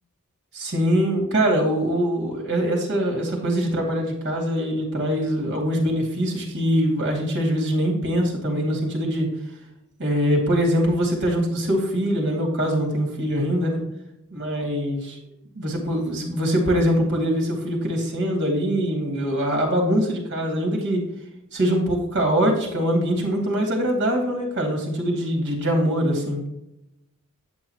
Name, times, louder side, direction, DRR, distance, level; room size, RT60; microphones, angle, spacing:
voice 1, 0.5-9.3 10.0-13.8 14.3-15.2 15.6-21.1 21.5-26.4, equal, 55° right, 0 dB, 2.6 m, -23 dB
8.4 x 7.8 x 3.0 m, 0.87 s
head